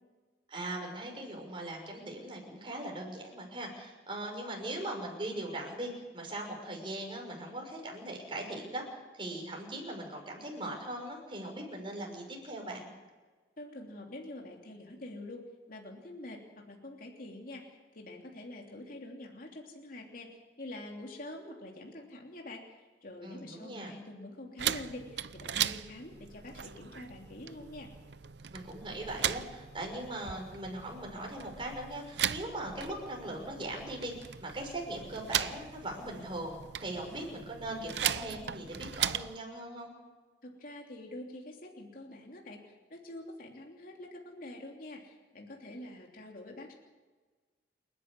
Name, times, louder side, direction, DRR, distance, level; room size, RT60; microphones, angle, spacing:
voice 1, 0.5-12.9 23.2-24.0 28.5-34.1 34.4-39.9, right 1 dB, 30° right, 1 dB, 5.9 m, -40 dB
voice 2, 13.6-15.4 15.7-17.6 17.9-20.3 20.6-27.9 40.4-42.6 42.9-46.7, left 1 dB, 55° left, 0 dB, 3.1 m, -46 dB
sound 1, 24.6-39.4, right 10 dB, 75° right, 0.7 m, -38 dB
28.5 x 11.0 x 9.8 m, 1.3 s
head